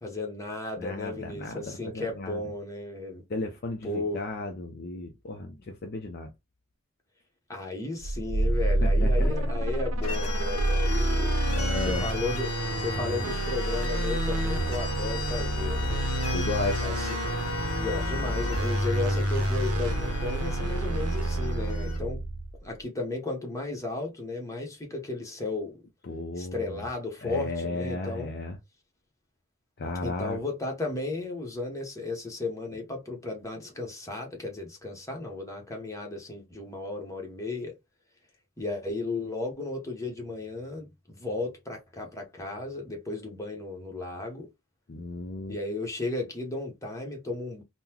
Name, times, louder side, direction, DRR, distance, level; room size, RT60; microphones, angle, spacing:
voice 1, 0.0-3.2 3.8-4.2 7.5-11.3 11.9-16.3 16.8-17.2 17.8-22.2 22.6-25.8 26.4-28.3 30.0-37.7 38.6-44.5 45.5-47.6, left 2 dB, 15° left, 0.8 m, -34 dB
voice 2, 0.8-2.4 3.3-6.3 8.8-9.5 11.5-12.1 16.3-16.8 26.1-26.9 27.2-28.6 29.8-30.4 44.9-45.6, left 2 dB, 45° left, 0.4 m, -34 dB
sound 1, 8.0-22.6, right 1 dB, 75° right, 0.6 m, -28 dB
sound 2, 10.0-22.0, left 4 dB, 85° left, 0.8 m, -37 dB
3.8 x 2.1 x 2.8 m
head